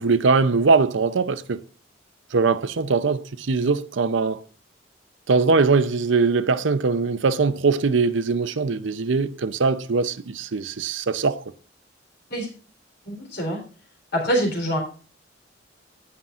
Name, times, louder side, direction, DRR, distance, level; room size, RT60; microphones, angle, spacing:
voice 1, 0.0-1.6 2.3-4.4 5.3-11.4, right 4 dB, 75° right, 0.6 m, -21 dB
voice 2, 13.1-13.6 14.1-14.8, equal, 60° left, 3.8 m, -24 dB
16.5 x 5.6 x 2.5 m
head